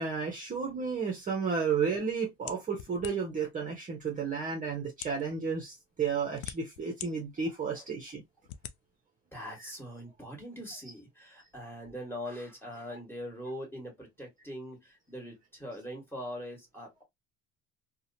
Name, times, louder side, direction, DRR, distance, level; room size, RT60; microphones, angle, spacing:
voice 1, 0.0-8.2 9.6-9.7 12.9-13.0, right 5 dB, 25° right, 0.7 m, -32 dB
sound 1, 2.5-3.4 4.2-4.3 4.9-5.2 6.0-7.1 7.6-7.7 8.5-8.8, left 11 dB, 75° left, 0.5 m, -43 dB
voice 2, 9.3-17.0, equal, 5° left, 1.5 m, -42 dB
2.7 x 2.1 x 2.6 m
supercardioid pair, 105°, 30 cm